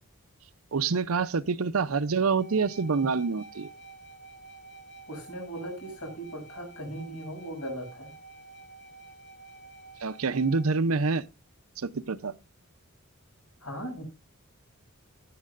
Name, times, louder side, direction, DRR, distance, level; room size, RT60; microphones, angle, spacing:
voice 1, 0.7-3.7 10.0-11.2 11.8-12.3, right 4 dB, 75° right, 0.7 m, -26 dB
sound 1, 2.4-10.7, right 3 dB, 30° left, 2.1 m, -49 dB
voice 2, 5.1-8.1 13.6-14.0, right 1 dB, 80° left, 6.9 m, -38 dB
16.5 x 9.3 x 2.5 m
head